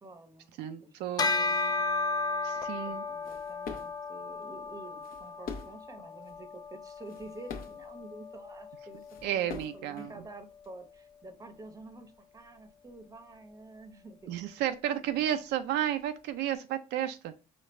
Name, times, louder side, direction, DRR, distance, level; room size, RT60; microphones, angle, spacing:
voice 1, 0.0-1.0 1.3-1.8 2.8-14.3 14.9-15.4, right 2 dB, 20° right, 8 dB, 0.8 m, -49 dB
voice 2, 0.6-1.3 2.4-3.0 9.2-10.1 14.3-17.3, right 11 dB, 80° right, 8 dB, 0.5 m, -32 dB
Bell, 1.2-10.9, left 3 dB, 25° left, 0.4 m, -35 dB
sound 1, 2.9-4.1 4.7-5.9 6.3-6.4 6.9-7.9 8.7-8.8 9.0-10.7, left 5 dB, 60° left, 0.9 m, -44 dB
5.1 x 2.4 x 4.1 m, 0.31 s
cardioid pair, 110°, 17 cm